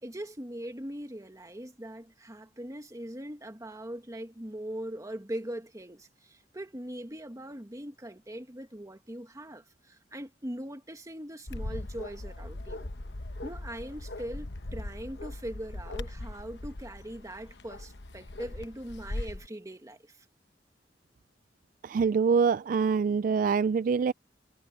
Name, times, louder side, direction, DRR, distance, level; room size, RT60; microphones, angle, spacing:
voice 1, 0.0-12.9 13.4-20.3, right 1 dB, 20° right, 1.8 m, -41 dB
Bark, 11.5-19.5, left 1 dB, 70° left, 1.1 m, -40 dB
voice 2, 21.8-24.1, right 5 dB, 50° right, 0.3 m, -25 dB
head